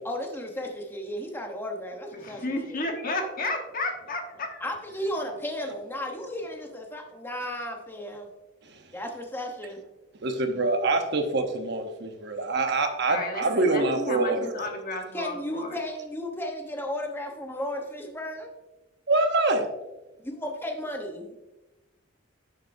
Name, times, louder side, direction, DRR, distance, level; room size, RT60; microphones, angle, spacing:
voice 1, 0.0-2.4 4.6-8.3 8.9-9.8 15.1-18.5 20.2-21.3, left 1 dB, 10° left, 2 dB, 1.0 m, -34 dB
voice 2, 2.1-4.6 13.1-15.8, left 2 dB, 45° left, 3 dB, 1.2 m, -32 dB
voice 3, 10.2-14.4 19.1-19.7, right 2 dB, 55° right, 6 dB, 0.9 m, -25 dB
11.0 x 6.6 x 2.7 m, 1.0 s
head